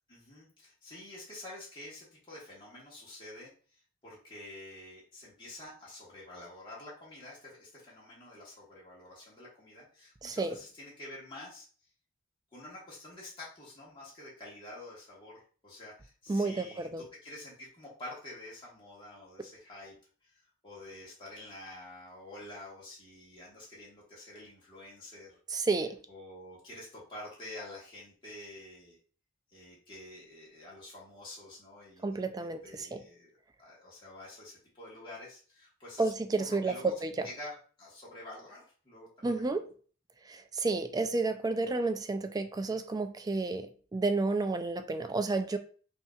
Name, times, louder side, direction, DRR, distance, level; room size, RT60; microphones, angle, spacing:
voice 1, 0.1-11.7 12.5-20.0 20.2-25.4 26.1-29.0 29.5-33.3 33.6-36.1 36.4-36.9 37.2-39.3 42.7-42.8, left 1 dB, 25° left, -7 dB, 1.5 m, -48 dB
voice 2, 10.2-10.6 16.3-17.0 25.5-26.0 32.0-33.0 36.0-37.3 39.2-39.6 40.3-45.6, right 3 dB, 20° right, 8 dB, 0.3 m, -31 dB
5.6 x 2.8 x 2.3 m, 0.41 s
head